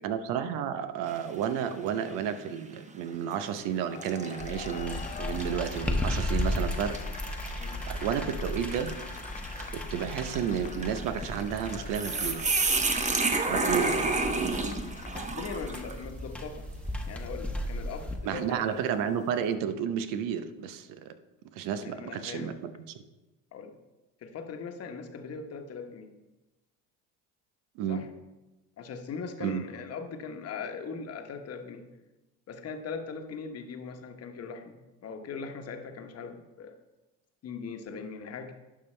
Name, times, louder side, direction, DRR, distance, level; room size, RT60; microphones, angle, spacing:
voice 1, 0.0-7.0 7.9-9.0 9.7-12.6 13.5-14.1 18.2-21.1 21.6-22.7 27.8-28.0 29.4-29.6, right 8 dB, 70° right, 10 dB, 0.8 m, -32 dB
sound 1, 1.1-1.6 2.1-2.2 3.2-3.4 4.0-16.0, right 3 dB, 20° right, 0.9 m, -32 dB
sound 2, 3.6-15.3, left 7 dB, 25° left, 0.4 m, -46 dB
sound 3, 4.4-18.2, left 1 dB, 5° left, 1.0 m, -36 dB
voice 2, 13.5-14.1 15.1-16.7 17.0-18.8 21.8-22.5 23.5-23.7 24.2-26.1 27.9-28.1 28.8-31.8 32.5-36.7 37.4-38.5, left 5 dB, 45° left, 5 dB, 1.2 m, -40 dB
11.5 x 5.6 x 3.3 m, 1.1 s
supercardioid pair, 80°, 34 cm